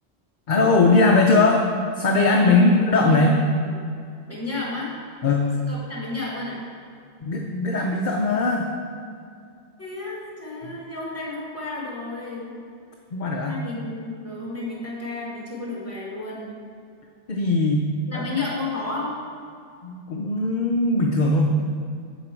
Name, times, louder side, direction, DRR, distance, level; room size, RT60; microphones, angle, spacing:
voice 1, 0.5-1.7 2.0-3.4 5.2-5.5 7.2-8.7 10.6-10.7 13.1-13.6 17.3-17.9 18.1-18.2 19.8-21.5, left 3 dB, 50° left, 1 dB, 0.7 m, -20 dB
voice 2, 3.0-3.3 3.7-3.8 4.3-4.9 5.7-6.6 9.8-12.5 13.4-16.5 18.1-19.2, left 3 dB, 15° left, -5 dB, 2.1 m, -32 dB
8.1 x 7.3 x 4.5 m, 2.3 s
omnidirectional pair, 1.1 m